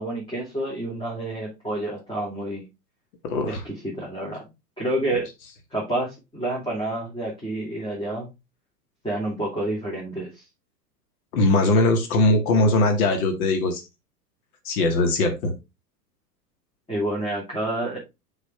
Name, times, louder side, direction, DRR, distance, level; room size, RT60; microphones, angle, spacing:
voice 1, 0.0-2.6 3.5-4.4 4.8-5.3 5.7-8.3 9.0-10.4 16.9-18.0, right 1 dB, 10° left, -4 dB, 2.9 m, -29 dB
voice 2, 3.2-3.6 11.3-13.8 14.7-15.5, left 2 dB, 60° left, 4 dB, 2.2 m, -20 dB
6.6 x 5.6 x 3.4 m, 0.24 s
hypercardioid pair, 95°, 48 cm